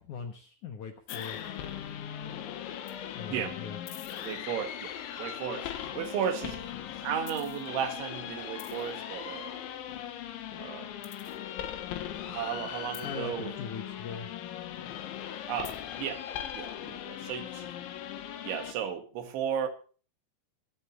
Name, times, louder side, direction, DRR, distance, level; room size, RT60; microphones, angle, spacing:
voice 1, 0.0-1.5 3.1-3.8 13.0-14.3, left 6 dB, 65° left, 2.0 m, -41 dB
sound 1, 1.1-18.7, left 10 dB, 85° left, 3.8 m, -39 dB
voice 2, 3.3-3.6 4.2-6.7 6.9-9.6 10.6-10.9 12.3-13.6 15.5-16.3 16.5-17.7 18.5-19.7, right 8 dB, 85° right, 4.1 m, -35 dB
24.5 x 8.5 x 3.0 m
omnidirectional pair, 5.2 m